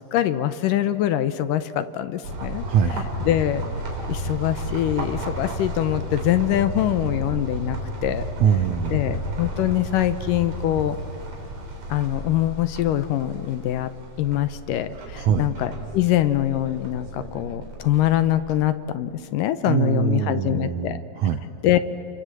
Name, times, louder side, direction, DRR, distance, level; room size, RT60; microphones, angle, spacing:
voice 1, 0.0-2.7 3.0-3.6 4.1-8.3 8.9-11.0 11.9-13.9 14.2-21.0 21.6-21.8, left 12 dB, 75° left, 12 dB, 2.2 m, -24 dB
sound 1, 2.2-18.6, right 1 dB, 50° right, 4.6 m, -33 dB
voice 2, 2.6-3.1 8.4-9.2 15.1-15.5 19.7-21.4, right 8 dB, 75° right, 8 dB, 1.7 m, -23 dB
29.5 x 24.0 x 7.7 m, 2.9 s
omnidirectional pair, 4.2 m